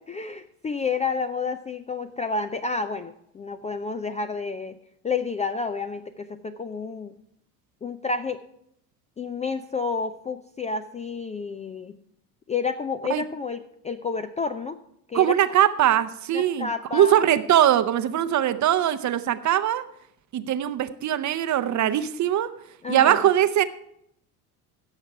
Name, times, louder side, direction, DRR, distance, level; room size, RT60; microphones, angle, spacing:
voice 1, 0.1-4.7 5.0-7.1 7.8-8.4 9.2-12.0 12.5-14.8 15.1-15.3 16.3-17.3 22.8-23.3, left 4 dB, 15° left, 9 dB, 0.4 m, -30 dB
voice 2, 15.1-19.8 20.3-22.5 22.9-23.6, right 11 dB, 35° right, 13 dB, 0.8 m, -21 dB
16.5 x 6.5 x 4.7 m, 0.73 s
hypercardioid pair, 70°, 47 cm